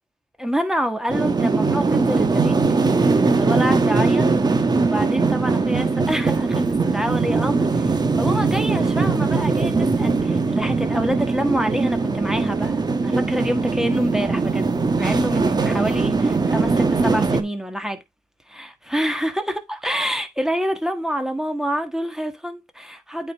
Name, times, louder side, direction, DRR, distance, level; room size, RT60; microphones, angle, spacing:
voice 1, 0.4-2.5 3.4-4.3 4.8-14.7 15.0-18.0 18.5-23.3, equal, 5° right, 1.6 m, -27 dB
sound 1, 1.1-17.4, right 4 dB, 30° right, 1.2 m, -20 dB
sound 2, 15.1-16.7, right 6 dB, 55° right, 1.5 m, -36 dB
8.5 x 4.8 x 3.5 m
cardioid pair, 80°, 14 cm